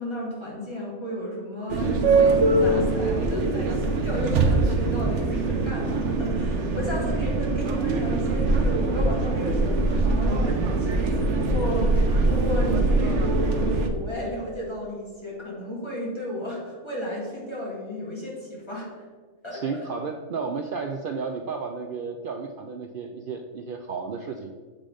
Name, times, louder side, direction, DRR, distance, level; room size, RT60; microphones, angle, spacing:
voice 1, 0.0-19.0 19.4-19.9, left 1 dB, 20° left, -6 dB, 1.9 m, -33 dB
sound 1, 1.7-13.9, right 3 dB, 60° right, 1.0 m, -23 dB
voice 2, 19.5-24.5, right 5 dB, 85° right, 3 dB, 0.4 m, -32 dB
7.6 x 3.8 x 5.0 m, 1.4 s
omnidirectional pair, 1.5 m